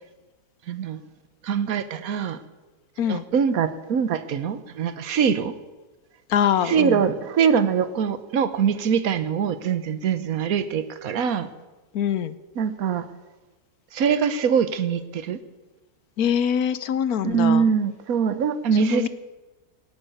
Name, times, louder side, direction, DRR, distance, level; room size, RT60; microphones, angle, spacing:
voice 1, 0.7-1.0 1.4-2.4 3.1-5.5 6.6-11.5 12.6-13.1 13.9-15.4 17.2-19.1, right 7 dB, 60° right, 12 dB, 1.4 m, -23 dB
voice 2, 6.3-7.0 11.9-12.4 16.2-17.7 18.8-19.1, left 9 dB, 65° left, 14 dB, 1.2 m, -23 dB
17.0 x 9.0 x 9.2 m, 1.2 s
omnidirectional pair, 1.8 m